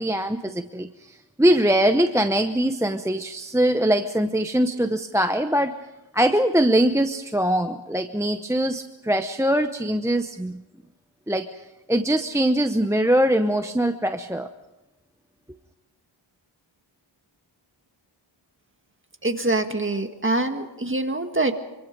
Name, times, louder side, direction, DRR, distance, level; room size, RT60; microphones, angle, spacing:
voice 1, 0.0-5.7 6.1-10.6 11.3-11.5 11.9-14.5, right 1 dB, 5° right, 8 dB, 0.8 m, -22 dB
voice 2, 19.2-21.6, right 2 dB, 25° right, 6 dB, 1.8 m, -24 dB
25.0 x 25.0 x 5.3 m, 1.0 s
wide cardioid pair, 95°, 47 cm